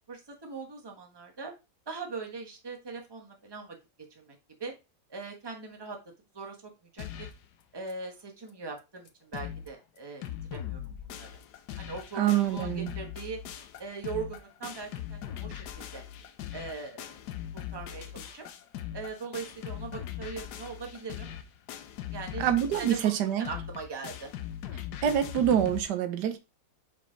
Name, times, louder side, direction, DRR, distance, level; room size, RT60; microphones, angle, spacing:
voice 1, 0.1-1.5 1.9-3.8 4.1-4.7 5.1-6.0 6.3-7.3 7.7-10.2 10.5-11.3 11.8-13.4 13.8-16.0 16.5-17.1 17.5-18.4 18.9-21.3 22.1-22.5 22.8-24.3, right 4 dB, 15° right, 1.2 m, -40 dB
sound 1, 7.0-7.5 7.9-8.0 8.2-8.3 8.8-8.9 9.1-9.7 10.0-25.8, left 10 dB, 75° left, 1.3 m, -40 dB
voice 2, 12.2-12.9 22.4-23.5 25.0-26.4, right 10 dB, 85° right, 1.4 m, -26 dB
5.1 x 5.0 x 4.4 m
omnidirectional pair, 1.8 m